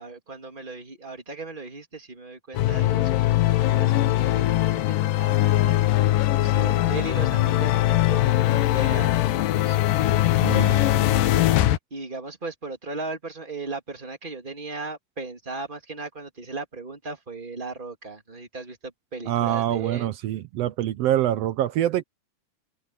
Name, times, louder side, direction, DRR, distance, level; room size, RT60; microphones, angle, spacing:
voice 1, 0.0-5.8 6.4-9.8 10.2-11.2 11.9-20.1, right 3 dB, 15° right, 2.7 m, -37 dB
sound 1, 2.5-11.8, left 14 dB, 80° left, 2.6 m, -21 dB
voice 2, 19.3-22.0, right 12 dB, 85° right, 1.4 m, -25 dB
open air
omnidirectional pair, 3.9 m